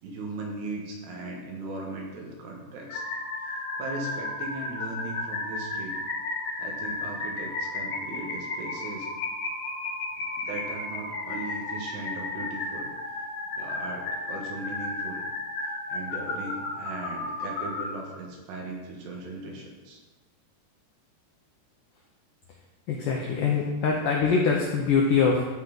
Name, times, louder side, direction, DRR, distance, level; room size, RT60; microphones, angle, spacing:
voice 1, 0.0-3.0 3.4-6.0 6.6-9.1 10.4-13.2 13.6-15.2 15.9-20.0, right 2 dB, 80° right, 0 dB, 3.4 m, -38 dB
sound 1, 2.9-17.9, left 2 dB, 65° left, 2.0 m, -33 dB
voice 2, 22.9-25.4, left 5 dB, 80° left, -1 dB, 1.9 m, -23 dB
13.0 x 4.7 x 4.0 m, 1.2 s
omnidirectional pair, 4.9 m